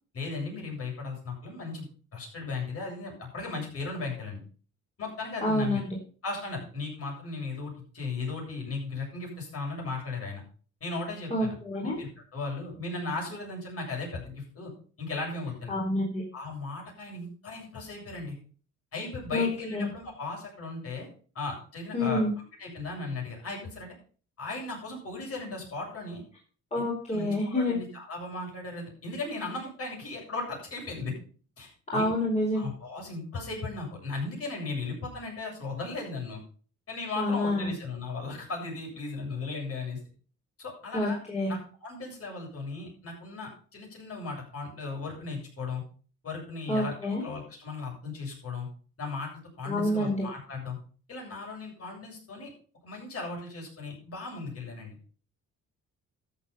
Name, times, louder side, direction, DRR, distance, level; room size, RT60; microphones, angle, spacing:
voice 1, 0.1-1.9 2.1-4.4 5.0-5.8 6.2-10.4 10.8-14.7 15.0-15.7 16.3-18.4 18.9-21.1 21.3-22.2 22.6-23.9 24.4-26.2 26.7-31.1 31.6-32.1 32.5-36.4 36.9-40.0 40.6-41.2 41.5-45.8 46.2-48.7 49.0-49.3 49.6-50.8 51.1-52.5 52.8-55.0, left 3 dB, 50° left, -1 dB, 7.6 m, -36 dB
voice 2, 5.4-6.0 11.3-12.0 15.7-16.2 19.3-19.9 21.9-22.3 26.7-27.8 31.9-32.7 37.2-37.7 40.9-41.5 46.7-47.2 49.6-50.2, left 1 dB, 20° left, -4 dB, 4.3 m, -28 dB
13.5 x 7.6 x 5.7 m, 0.41 s
cardioid pair, 115°, 31 cm